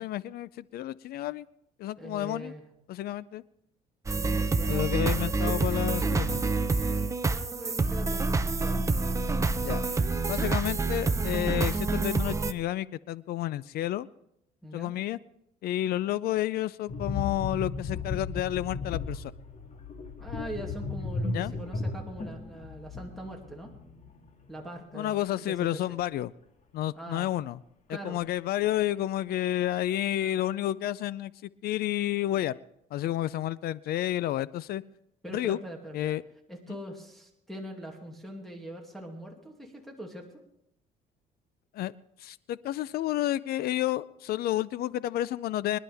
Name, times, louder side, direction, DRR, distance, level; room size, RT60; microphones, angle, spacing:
voice 1, 0.0-1.5 1.8-2.5 2.9-3.4 4.7-6.4 9.6-9.8 10.3-14.1 14.7-15.2 15.6-19.3 21.3-21.5 24.9-26.3 26.7-27.6 28.0-32.6 32.9-34.8 35.3-35.6 35.9-36.2 41.7-41.9 42.2-45.8, left 13 dB, 65° left, 19 dB, 0.5 m, -30 dB
voice 2, 2.0-2.7 4.1-5.6 7.3-8.9 14.6-14.9 20.2-23.7 24.5-26.0 26.9-27.3 27.9-28.2 35.2-36.2 36.5-40.3, right 1 dB, ahead, 2 dB, 2.4 m, -42 dB
sound 1, 4.1-12.5, right 3 dB, 20° right, 0.7 m, -27 dB
sound 2, 16.9-24.3 24.5-24.8, left 4 dB, 45° left, 2.2 m, -35 dB
26.5 x 11.0 x 3.5 m, 0.79 s
cardioid pair, 110°, 17 cm